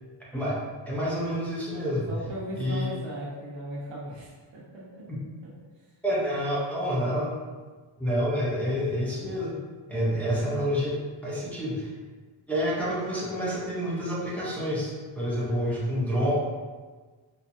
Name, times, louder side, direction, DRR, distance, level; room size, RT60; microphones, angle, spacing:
voice 1, 0.9-2.1 2.6-2.9 5.1-5.2 6.0-7.3 8.0-9.6 9.9-11.9 12.5-16.3, equal, 5° left, -8 dB, 0.6 m, -28 dB
voice 2, 2.1-4.8 10.0-10.3, right 1 dB, 70° right, -5 dB, 1.1 m, -37 dB
4.2 x 2.4 x 2.6 m, 1.4 s
wide cardioid pair, 155°, 46 cm